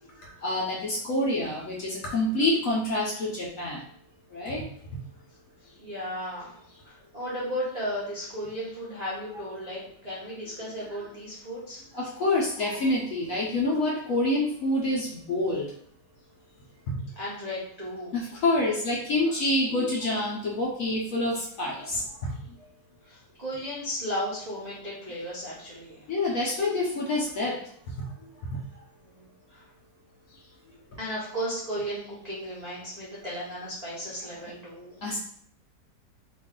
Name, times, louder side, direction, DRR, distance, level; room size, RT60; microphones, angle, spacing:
voice 1, 0.2-3.8 4.3-4.6 11.9-15.7 16.9-17.0 18.1-22.3 26.1-27.6 28.0-28.1 35.0-35.2, left 2 dB, 65° left, -3 dB, 0.9 m, -27 dB
voice 2, 5.6-11.8 17.2-18.1 23.0-26.1 29.0-29.7 30.3-30.5 31.0-35.0, equal, 80° right, -8 dB, 0.3 m, -35 dB
3.0 x 2.5 x 3.6 m, 0.66 s
omnidirectional pair, 2.0 m